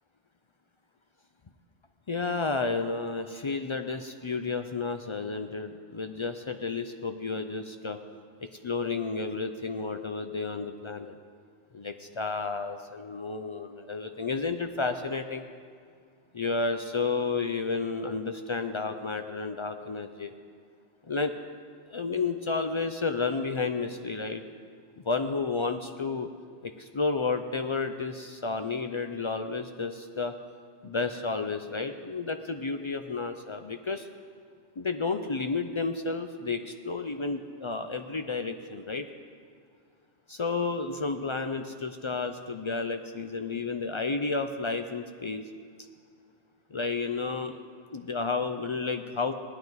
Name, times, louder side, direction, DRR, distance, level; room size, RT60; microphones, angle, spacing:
voice 1, 2.1-8.0 8.4-11.2 11.7-15.4 16.3-20.3 21.0-21.3 21.9-24.4 25.0-26.3 26.6-30.3 30.8-34.1 34.8-39.1 40.3-45.4 46.7-47.6 47.9-49.3, left 4 dB, 50° left, 7 dB, 0.3 m, -31 dB
18.0 x 10.5 x 4.0 m, 2.1 s
omnidirectional pair, 1.2 m